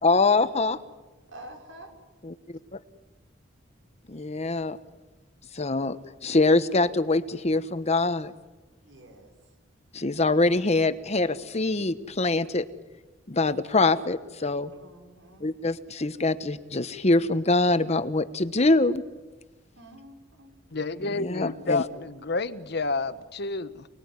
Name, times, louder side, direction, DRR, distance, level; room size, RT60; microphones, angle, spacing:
voice 1, 0.0-0.8 2.2-2.3 4.1-4.8 5.5-6.0 6.2-8.3 9.9-12.7 13.3-14.7 15.4-19.0 21.2-21.8, left 2 dB, 35° left, 12 dB, 1.1 m, -24 dB
voice 2, 1.3-1.9 8.8-9.3 14.7-15.5 19.7-20.5, right 1 dB, 85° right, 3 dB, 6.1 m, -47 dB
voice 3, 20.7-23.9, left 3 dB, 60° left, 12 dB, 1.3 m, -29 dB
29.5 x 20.5 x 9.7 m, 1.2 s
head